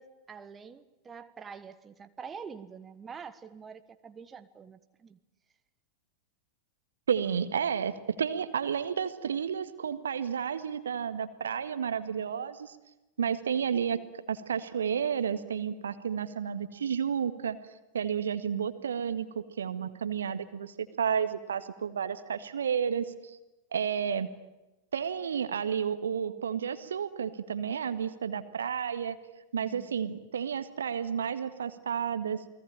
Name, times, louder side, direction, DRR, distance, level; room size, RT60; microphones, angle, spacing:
voice 1, 0.0-5.2 29.7-29.9, right 6 dB, 20° right, 10 dB, 1.4 m, -46 dB
voice 2, 7.1-12.8 13.2-14.0 14.3-17.6 17.9-23.4 23.7-24.3 24.9-29.2 29.5-32.4, right 7 dB, 65° right, 11 dB, 1.8 m, -31 dB
29.5 x 20.5 x 8.9 m, 0.98 s
figure-of-eight pair, 90°, 0 cm